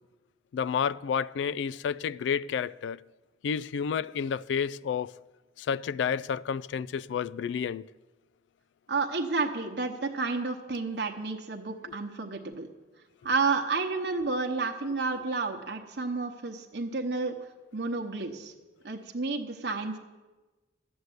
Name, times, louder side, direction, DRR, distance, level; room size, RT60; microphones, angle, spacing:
voice 1, 0.5-3.0 3.4-5.1 5.6-7.9, left 7 dB, 85° left, 0.3 m, -30 dB
voice 2, 8.9-12.7 13.2-17.3 17.7-18.5 18.8-20.0, right 3 dB, 70° right, 1.0 m, -31 dB
12.0 x 8.0 x 8.0 m
head